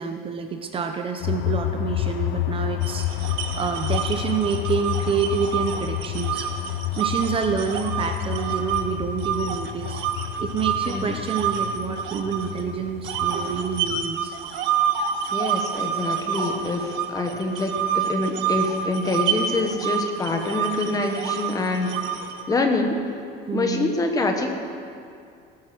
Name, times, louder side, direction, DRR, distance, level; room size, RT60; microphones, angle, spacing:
voice 1, 0.0-6.5 7.0-10.0 10.4-14.4 23.5-23.9, right 6 dB, 25° right, 6 dB, 0.7 m, -28 dB
sound 1, 1.2-14.1, left 16 dB, 75° left, 0.5 m, -30 dB
sound 2, 2.8-8.8 9.2-12.6 13.0-22.4, right 8 dB, 80° right, 1.3 m, -28 dB
voice 2, 10.9-11.2 15.3-21.9 22.5-23.1 23.5-24.5, left 2 dB, 20° left, 4 dB, 1.3 m, -25 dB
18.0 x 9.5 x 6.1 m, 2.4 s
cardioid pair, 160°, 20 cm